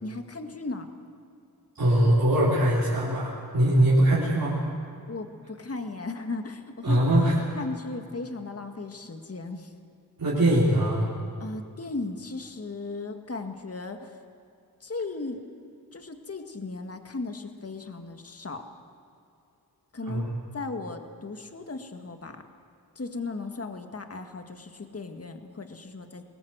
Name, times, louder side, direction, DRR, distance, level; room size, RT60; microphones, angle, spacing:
voice 1, 0.0-0.9 5.1-7.0 7.6-9.7 11.4-14.2 14.8-15.4 15.9-18.7 19.9-20.2 20.5-22.4 23.0-26.2, left 3 dB, 35° left, 6 dB, 1.8 m, -36 dB
voice 2, 1.8-4.6 6.8-7.3 10.2-11.1 20.1-20.3, right 1 dB, 60° right, -7 dB, 4.3 m, -22 dB
21.5 x 18.5 x 8.0 m, 2.6 s
cardioid pair, 55°, 39 cm